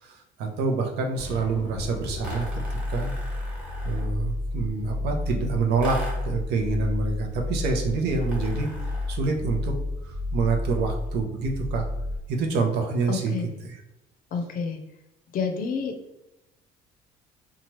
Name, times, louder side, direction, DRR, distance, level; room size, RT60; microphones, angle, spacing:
voice 1, 0.0-3.1 3.8-8.7 9.1-9.7 10.0-11.8 12.3-13.8, right 4 dB, 75° right, 2 dB, 0.7 m, -27 dB
sound 1, 1.2-12.6, left 2 dB, 25° right, 0.7 m, -31 dB
sound 2, 2.2-4.2 5.8-6.4 8.2-9.2, equal, 5° right, 1.1 m, -41 dB
voice 2, 13.1-13.5 14.3-14.8 15.3-15.9, left 5 dB, 55° left, 5 dB, 0.5 m, -28 dB
2.8 x 2.4 x 3.0 m, 0.93 s
cardioid pair, 110°, 17 cm